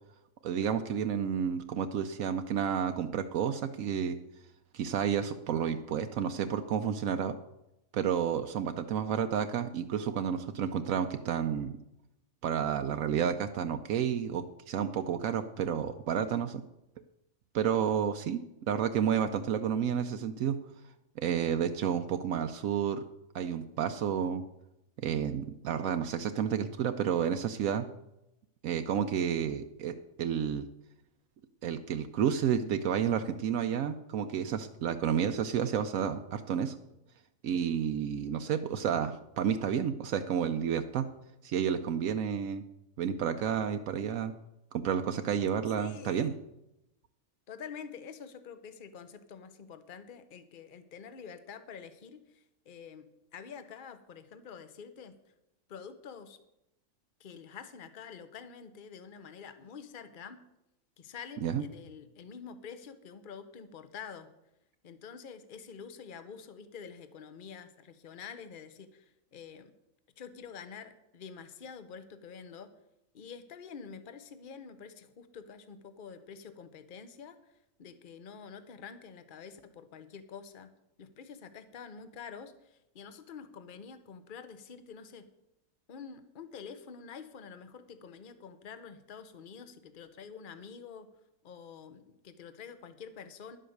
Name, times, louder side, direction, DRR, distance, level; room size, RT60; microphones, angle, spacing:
voice 1, 0.4-4.2 4.7-7.4 7.9-11.8 12.4-16.6 17.5-18.4 18.7-20.6 21.2-23.0 23.3-24.4 25.0-27.8 28.6-30.7 31.6-36.7 37.4-41.0 41.4-42.6 43.0-44.3 44.7-46.3 61.4-61.6, right 8 dB, 80° right, 7 dB, 1.0 m, -30 dB
voice 2, 45.7-46.4 47.5-53.1 53.3-55.1 55.7-56.4 57.2-60.4 61.0-64.3 64.8-69.7 70.2-72.7 73.1-80.7 81.0-85.2 85.9-91.1 91.4-93.6, left 6 dB, 45° left, 10 dB, 0.9 m, -47 dB
11.0 x 7.8 x 6.5 m, 0.87 s
omnidirectional pair, 1.4 m